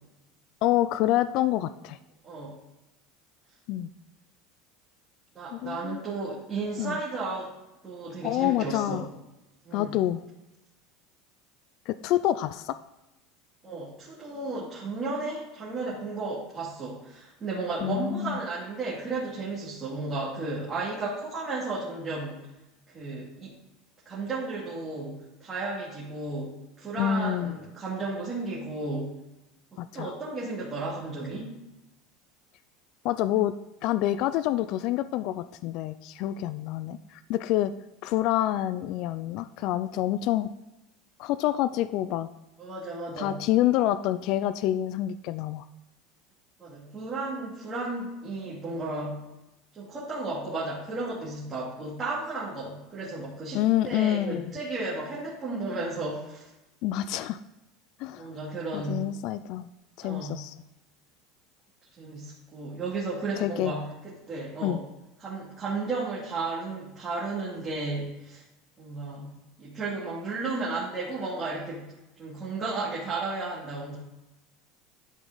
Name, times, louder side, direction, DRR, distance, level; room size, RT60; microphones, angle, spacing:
voice 1, 0.6-2.0 3.7-3.9 5.5-6.0 6.8-7.0 8.2-9.0 9.7-10.2 11.9-12.8 17.8-18.4 27.0-27.6 29.8-30.1 33.0-33.5 33.8-37.7 38.0-40.5 41.2-42.3 43.2-45.7 53.5-54.5 56.8-57.4 58.0-58.3 58.7-59.7 60.0-60.6 63.4-63.7 64.6-64.8, left 13 dB, 55° left, 14 dB, 0.3 m, -27 dB
voice 2, 2.2-2.6 5.3-7.5 7.8-9.0 9.6-9.9 13.6-22.4 22.9-23.5 24.1-26.5 26.8-29.1 29.9-31.5 42.6-43.4 46.6-49.2 49.7-56.5 58.2-59.1 60.0-60.4 62.0-64.8 65.2-68.4 68.8-69.3 69.6-74.0, right 3 dB, 25° right, -7 dB, 2.2 m, -34 dB
11.5 x 5.1 x 3.9 m, 0.98 s
supercardioid pair, 145°, 0 cm